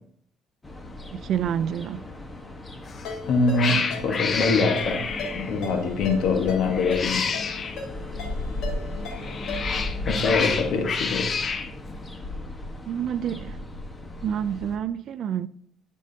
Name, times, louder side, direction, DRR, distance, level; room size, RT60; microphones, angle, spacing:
sound 1, 0.6-14.8, left 1 dB, 15° left, 1.2 m, -36 dB
voice 1, 1.1-2.0 12.8-13.6 14.2-15.5, right 9 dB, 55° right, 0.4 m, -28 dB
Cat, 2.8-3.1 3.5-5.6 6.7-7.8 9.1-11.7, left 5 dB, 35° left, 0.7 m, -29 dB
Ringtone, 3.0-9.9, left 3 dB, 80° left, 3.8 m, -38 dB
voice 2, 3.2-5.0 5.3-7.4 10.1-11.3, left 3 dB, 65° left, 1.3 m, -24 dB
12.5 x 6.3 x 2.8 m
cardioid pair, 135°, 0 cm